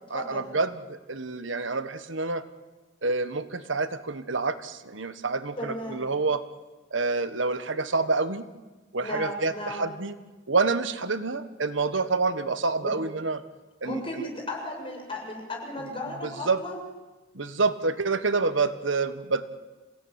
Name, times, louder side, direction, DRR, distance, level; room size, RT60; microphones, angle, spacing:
voice 1, 0.1-2.5 3.0-6.4 6.9-8.4 8.9-10.1 10.5-13.4 13.8-14.2 16.2-16.6 17.3-19.4, right 3 dB, 90° right, 12 dB, 1.4 m, -27 dB
voice 2, 5.6-6.1 9.0-10.0 12.8-12.9 13.8-16.8, left 1 dB, 30° left, 1 dB, 7.1 m, -35 dB
28.0 x 17.0 x 9.6 m, 1.2 s
head